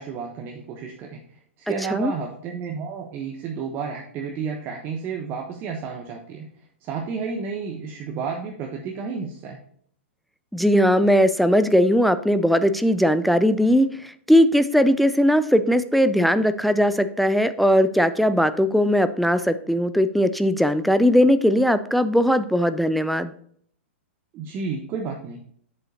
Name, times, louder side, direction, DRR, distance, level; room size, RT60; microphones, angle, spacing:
voice 1, 0.0-1.4 1.7-6.5 6.8-9.6 24.3-25.4, right 5 dB, 30° right, 2 dB, 0.9 m, -31 dB
voice 2, 10.5-23.3, equal, ahead, 11 dB, 0.3 m, -19 dB
7.7 x 7.6 x 2.8 m, 0.62 s
figure-of-eight pair, 110°, 7 cm